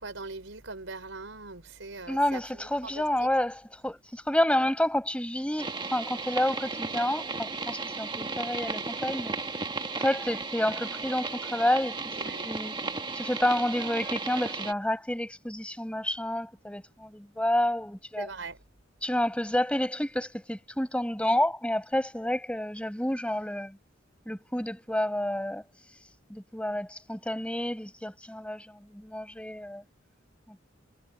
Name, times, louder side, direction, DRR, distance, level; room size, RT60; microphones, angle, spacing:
voice 1, 0.0-2.4 2.8-3.0 12.2-12.5 18.2-18.6, right 3 dB, 80° right, 4.4 m, -41 dB
voice 2, 2.1-9.3 9.9-12.0 12.4-12.7 13.1-18.3 19.0-23.8 24.2-25.6 26.3-29.8 30.5-30.6, left 1 dB, 5° left, 5.1 m, -29 dB
sound 1, 5.6-14.7, right 4 dB, 25° right, 1.8 m, -35 dB
head